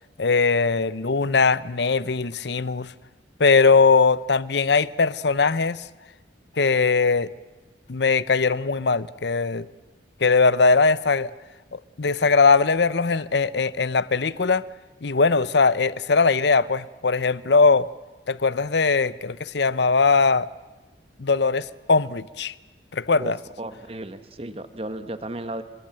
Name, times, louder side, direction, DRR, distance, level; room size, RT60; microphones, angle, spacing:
voice 1, 0.2-2.9 3.4-5.8 6.6-7.3 7.9-9.7 10.2-11.3 11.7-14.6 15.0-17.9 18.3-20.5 21.2-22.5 22.9-23.4, left 4 dB, 65° left, 0.8 m, -20 dB
voice 2, 23.6-25.6, right 1 dB, 30° right, 1.3 m, -34 dB
27.5 x 23.0 x 7.7 m
head